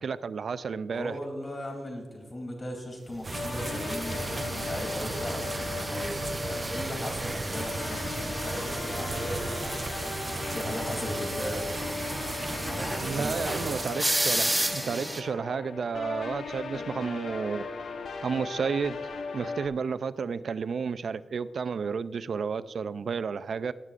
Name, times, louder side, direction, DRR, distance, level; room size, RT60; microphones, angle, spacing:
voice 1, 0.0-1.2 13.0-17.7 18.2-19.0 19.3-23.7, right 5 dB, 70° right, 15 dB, 0.4 m, -32 dB
voice 2, 0.9-9.8 10.5-11.7 13.1-13.6, equal, 30° left, 2 dB, 3.1 m, -37 dB
sound 1, 3.2-13.9, right 3 dB, 40° right, 0.7 m, -36 dB
sound 2, 3.3-19.7, left 4 dB, 85° left, 1.0 m, -37 dB
sound 3, 3.6-15.2, right 1 dB, 10° right, 1.2 m, -34 dB
19.5 x 9.6 x 2.5 m, 1.4 s
cardioid pair, 90°, 0 cm